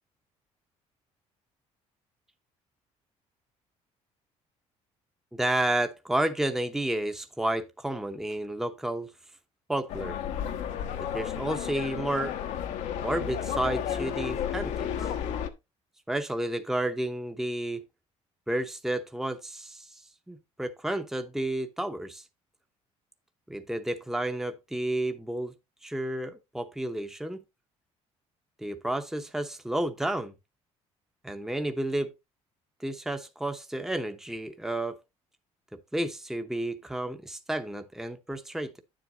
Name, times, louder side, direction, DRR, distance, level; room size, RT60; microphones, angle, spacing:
voice 1, 5.3-9.1 9.7-10.2 11.1-12.4 13.0-15.0 16.1-17.8 18.5-20.0 20.3-22.2 23.5-25.5 25.8-27.4 28.6-30.3 31.2-32.1 32.8-35.0 35.7-38.8, right 1 dB, 5° right, 0.8 m, -31 dB
sound 1, 9.9-15.5, left 9 dB, 75° left, 1.0 m, -32 dB
9.0 x 7.6 x 2.7 m
cardioid pair, 105°, 13 cm